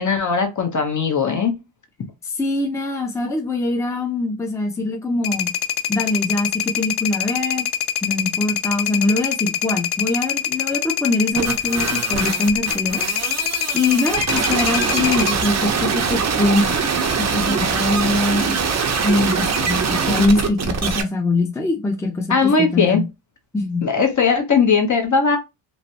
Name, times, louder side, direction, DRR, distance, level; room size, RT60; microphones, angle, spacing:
voice 1, 0.0-1.5 22.3-23.0 23.8-25.4, left 5 dB, 40° left, 0.9 m, -18 dB
voice 2, 2.2-5.5 5.9-7.7 8.0-13.0 13.7-16.8 17.3-18.5 19.0-23.0 23.5-23.8, left 2 dB, 5° left, 0.7 m, -22 dB
sound 1, 5.2-15.4, left 9 dB, 55° left, 0.5 m, -24 dB
sound 2, 11.4-21.0, right 5 dB, 35° right, 0.7 m, -22 dB
3.2 x 2.1 x 2.7 m
cardioid pair, 80°, 47 cm